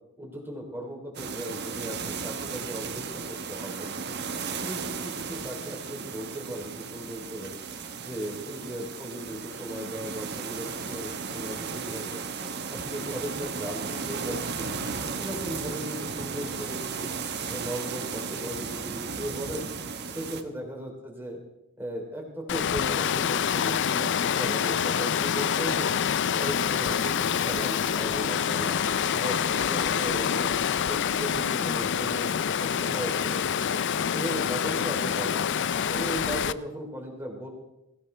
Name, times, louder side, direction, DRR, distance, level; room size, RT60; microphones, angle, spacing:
voice 1, 0.2-3.9 4.6-7.5 7.9-12.2 12.7-14.7 15.1-17.1 17.5-19.7 20.1-21.4 21.8-25.9 26.4-28.7 29.1-30.5 30.8-33.7 34.1-35.4 35.9-37.5, right 1 dB, 10° right, 0 dB, 3.3 m, -37 dB
sound 1, 1.1-20.4, right 5 dB, 50° right, 1.1 m, -35 dB
Water, 22.5-36.5, left 8 dB, 55° left, 0.4 m, -26 dB
22.0 x 16.0 x 3.4 m, 0.90 s
head